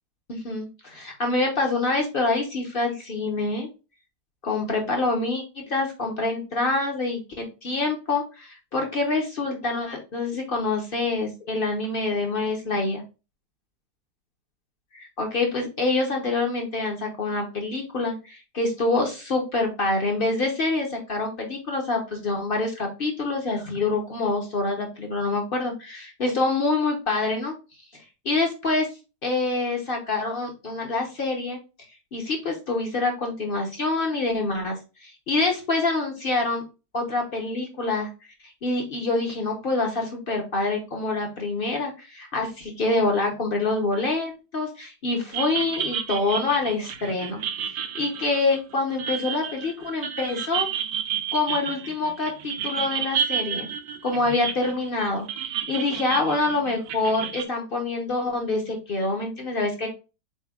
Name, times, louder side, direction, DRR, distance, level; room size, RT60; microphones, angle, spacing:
voice 1, 0.3-3.7 4.4-13.0 14.9-27.5 27.9-28.9 29.2-31.6 32.1-34.8 35.0-36.6 36.9-38.1 38.6-50.7 51.3-53.7 54.0-59.9, left 3 dB, 50° left, 2 dB, 0.7 m, -26 dB
sound 1, 45.3-57.4, right 8 dB, 70° right, 1.0 m, -31 dB
4.3 x 4.1 x 2.3 m, 0.30 s
omnidirectional pair, 1.9 m